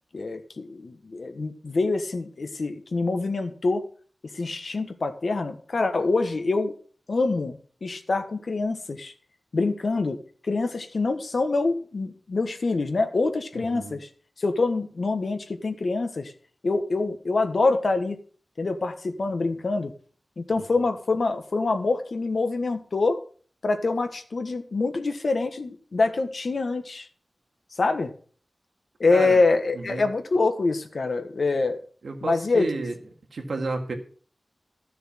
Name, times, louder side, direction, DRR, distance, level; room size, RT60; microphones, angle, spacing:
voice 1, 0.1-3.8 4.3-6.7 7.1-9.1 9.5-10.2 10.4-14.1 14.4-16.3 16.6-18.2 18.6-19.9 20.4-23.2 23.6-27.1 27.8-28.1 29.0-31.8 32.2-32.7, left 3 dB, 70° left, 7 dB, 1.5 m, -25 dB
voice 2, 13.6-14.0 20.5-20.6 29.1-29.4 29.7-30.1 32.0-32.9 33.3-33.9, right 3 dB, 90° right, 4 dB, 2.0 m, -31 dB
13.0 x 6.8 x 5.8 m, 0.43 s
wide cardioid pair, 75°, 0 cm